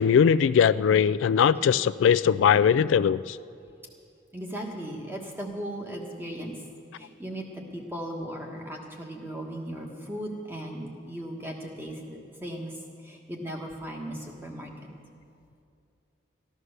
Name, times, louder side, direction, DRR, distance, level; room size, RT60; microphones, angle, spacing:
voice 1, 0.0-3.4, left 7 dB, 85° left, 15 dB, 0.3 m, -20 dB
voice 2, 4.3-6.6 6.9-12.7 13.0-14.9, right 1 dB, 10° right, 0 dB, 1.4 m, -37 dB
14.5 x 11.0 x 6.6 m, 2.5 s
head